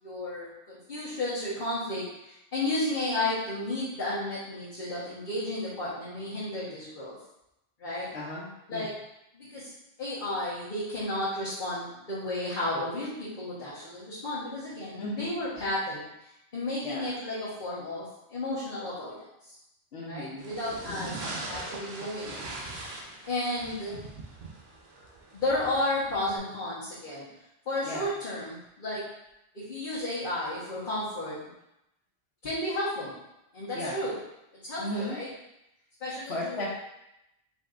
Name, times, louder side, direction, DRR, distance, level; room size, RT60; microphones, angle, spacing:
voice 1, 0.0-7.2 7.8-8.1 8.7-8.9 9.3-9.7 10.0-16.1 16.5-19.5 20.1-21.2 21.5-22.4 22.7-22.8 23.2-24.0 25.3-27.3 27.6-29.0 29.5-31.4 32.4-33.1 33.5-34.1 34.6-35.3 36.0-36.7, left 1 dB, 50° left, -10 dB, 1.4 m, -33 dB
voice 2, 8.1-8.9 15.0-15.3 16.8-17.1 19.9-20.5 20.9-21.1 27.8-28.1 33.7-34.0 34.8-35.2 36.3-36.7, left 1 dB, 80° left, -5 dB, 1.1 m, -35 dB
sound 1, 20.4-26.4, right 2 dB, 75° right, 1.1 m, -41 dB
5.2 x 4.0 x 2.5 m, 0.87 s
omnidirectional pair, 1.1 m